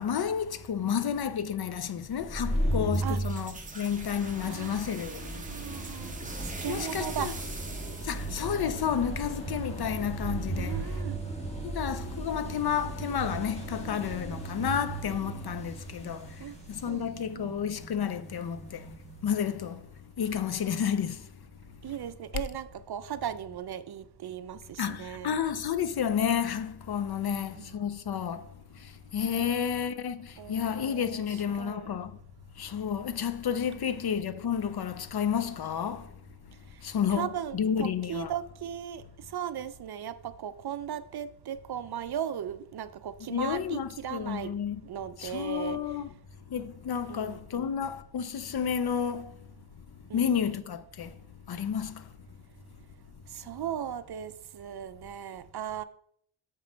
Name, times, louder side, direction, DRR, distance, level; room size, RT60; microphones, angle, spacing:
voice 1, 0.0-5.4 6.7-7.3 8.0-11.0 11.6-18.9 19.2-19.8 20.2-21.3 24.8-28.5 28.8-32.1 32.6-36.1 36.8-38.3 43.3-44.8 45.2-46.1 46.5-49.3 50.1-51.2 51.5-52.1, left 8 dB, 50° left, 0.5 m, -31 dB
sound 1, 2.1-19.5, right 1 dB, 15° left, 1.5 m, -36 dB
sound 2, 2.9-9.5, right 3 dB, 15° right, 1.1 m, -44 dB
voice 2, 4.4-6.1 6.6-7.3 10.6-11.2 16.4-16.6 16.9-17.5 21.8-25.4 27.2-27.8 29.4-29.8 30.4-32.0 37.1-39.0 39.3-44.5 44.8-45.8 47.1-47.7 50.1-50.3 53.3-55.8, right 9 dB, 50° right, 0.5 m, -37 dB
6.8 x 5.3 x 5.0 m
wide cardioid pair, 135°, 50 cm